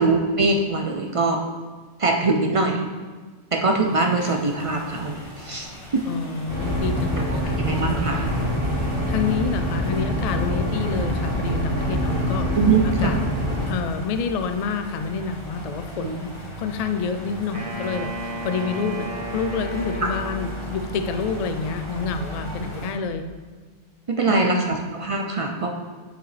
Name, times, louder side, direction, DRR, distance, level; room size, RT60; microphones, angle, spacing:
voice 1, 0.0-1.4 2.0-2.8 3.5-5.7 5.9-6.0 7.5-8.3 12.5-13.1 16.0-16.1 20.0-20.1 24.1-25.7, right 3 dB, 55° right, 2 dB, 0.3 m, -22 dB
sound 1, 3.6-22.9, equal, 25° left, 1.5 m, -38 dB
voice 2, 6.1-8.2 9.1-12.5 13.0-13.2 13.7-16.3 16.6-23.2 24.2-24.9, left 5 dB, 90° left, 7 dB, 0.3 m, -28 dB
sound 2, 6.5-13.7, equal, 40° right, 1.6 m, -25 dB
Wind instrument woodwind instrument, 17.5-21.0, right 2 dB, 85° right, 1.8 m, -34 dB
9.0 x 4.8 x 3.3 m, 1.4 s
omnidirectional pair, 1.2 m